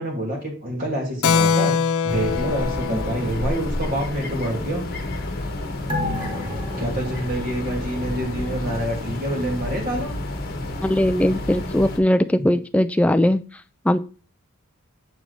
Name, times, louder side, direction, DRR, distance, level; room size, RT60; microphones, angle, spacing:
voice 1, 0.0-4.8 6.8-10.2, right 1 dB, 40° right, -1 dB, 2.8 m, -27 dB
Keyboard (musical), 1.2-5.3, left 6 dB, 75° left, 0.5 m, -25 dB
sound 1, 2.1-12.0, left 1 dB, 45° left, 1.1 m, -30 dB
sound 2, 5.9-8.8 9.1-9.2, left 1 dB, 20° right, 1.2 m, -31 dB
voice 2, 10.8-13.4 13.8-14.0, left 1 dB, 5° left, 10 dB, 0.3 m, -19 dB
7.3 x 4.7 x 4.1 m, 0.36 s
head